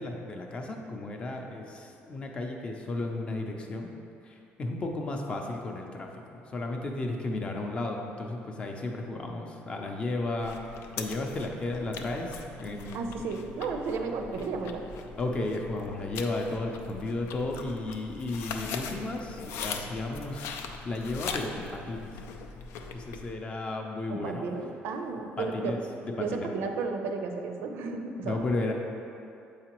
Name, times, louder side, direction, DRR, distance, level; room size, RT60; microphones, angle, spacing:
voice 1, 0.0-3.9 4.3-10.6 11.0-13.1 15.2-22.1 22.9-24.5 25.4-26.5 28.2-28.7, left 2 dB, 25° left, 2 dB, 0.5 m, -34 dB
sound 1, 10.4-23.3, left 5 dB, 90° left, 0.4 m, -41 dB
voice 2, 12.9-14.9 24.1-25.8 26.1-28.5, right 4 dB, 70° right, 4 dB, 0.5 m, -33 dB
7.3 x 4.8 x 3.0 m, 2.6 s
cardioid pair, 165°, 4 cm